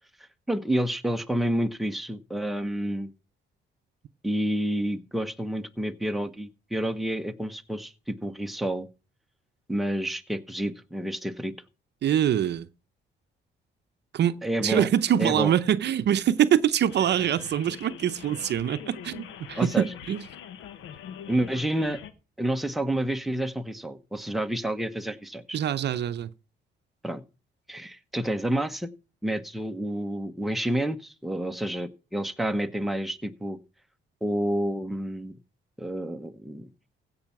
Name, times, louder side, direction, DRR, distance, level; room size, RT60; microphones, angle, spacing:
voice 1, 0.5-3.1 4.2-8.9 9.7-11.5 14.4-14.9 15.2-15.5 19.6-19.8 21.3-22.0 22.4-25.6 27.0-27.2 27.7-28.9 29.2-33.6 34.2-35.3 35.8-36.7, right 1 dB, ahead, 1.0 m, -29 dB
voice 2, 12.0-12.7 14.1-20.2 25.5-26.3, right 10 dB, 60° right, 0.7 m, -24 dB
sound 1, 16.9-22.1, left 9 dB, 85° left, 1.1 m, -43 dB
15.5 x 5.6 x 5.9 m
cardioid pair, 90°, 20 cm